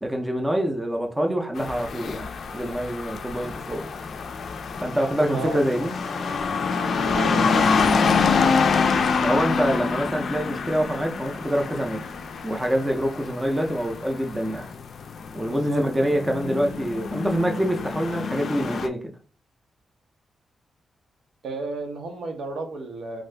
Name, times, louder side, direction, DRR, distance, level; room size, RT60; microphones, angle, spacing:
voice 1, 0.0-3.9 4.8-5.9 9.2-12.1 12.4-14.7 15.3-19.1, equal, 10° right, 2 dB, 0.4 m, -25 dB
sound 1, 1.6-18.9, left 5 dB, 55° left, 0.3 m, -26 dB
voice 2, 7.1-7.9 15.5-15.8 21.4-23.2, right 3 dB, 75° right, 3 dB, 0.7 m, -33 dB
2.7 x 2.5 x 3.2 m, 0.37 s
wide cardioid pair, 170°, 0 cm